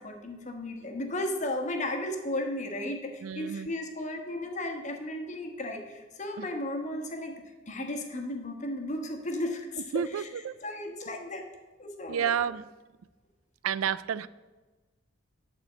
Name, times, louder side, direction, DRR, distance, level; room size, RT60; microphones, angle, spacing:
voice 1, 0.0-10.3 10.6-11.4 11.8-12.4, left 1 dB, 35° left, 3 dB, 1.2 m, -35 dB
voice 2, 3.2-3.7 6.4-6.5 9.9-10.6 12.1-12.7 13.6-14.3, right 8 dB, 85° right, 17 dB, 0.4 m, -30 dB
10.5 x 4.3 x 7.3 m, 1.2 s
head